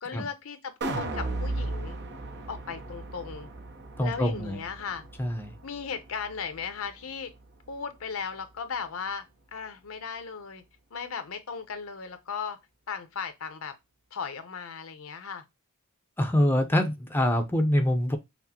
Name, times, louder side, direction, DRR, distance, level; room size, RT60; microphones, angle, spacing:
voice 1, 0.0-2.0 2.5-3.5 4.0-5.0 5.6-7.3 7.7-9.3 9.5-10.6 10.9-12.6 12.9-13.7 14.1-15.4, left 6 dB, 70° left, 0.7 m, -36 dB
sound 1, 0.8-7.0 7.4-7.5, right 2 dB, 55° right, 0.8 m, -36 dB
voice 2, 4.0-4.6 5.2-5.5 16.2-18.2, left 1 dB, 10° left, 0.6 m, -25 dB
5.8 x 2.0 x 2.8 m
head